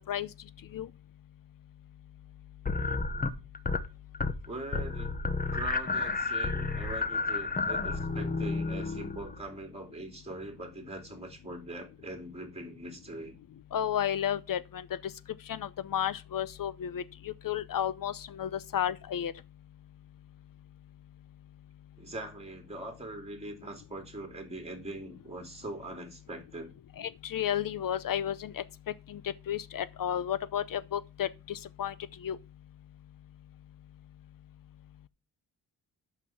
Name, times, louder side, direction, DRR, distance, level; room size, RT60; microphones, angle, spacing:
sound 1, 2.7-3.9 4.1-4.5 4.7-9.5, left 3 dB, 20° left, 0.9 m, -31 dB
voice 1, 4.5-5.1 5.5-13.3 22.0-26.7, right 2 dB, 15° right, 2.6 m, -42 dB
voice 2, 13.7-14.9 15.5-19.3 27.0-28.6 29.1-29.2 29.5-31.9 32.2-32.4, left 10 dB, 55° left, 0.7 m, -32 dB
5.9 x 5.8 x 7.1 m
cardioid pair, 105°, 40 cm